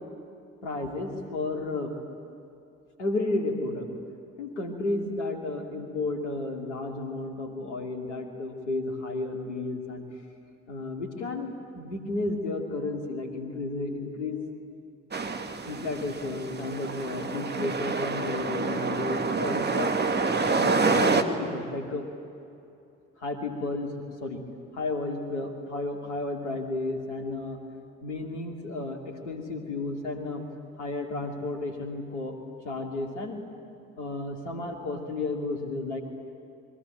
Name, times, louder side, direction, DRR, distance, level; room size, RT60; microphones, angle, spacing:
voice 1, 0.6-1.9 3.0-3.9 4.4-10.0 10.7-14.4 15.6-19.9 20.6-22.0 23.2-24.4 24.7-27.6 28.0-30.5 30.8-32.4 32.6-33.4 34.0-36.0, left 2 dB, 80° left, 3 dB, 2.7 m, -32 dB
sound 1, 15.1-21.2, right 4 dB, 30° right, 2.2 m, -27 dB
28.0 x 22.5 x 9.4 m, 2.6 s
figure-of-eight pair, 45°, 35 cm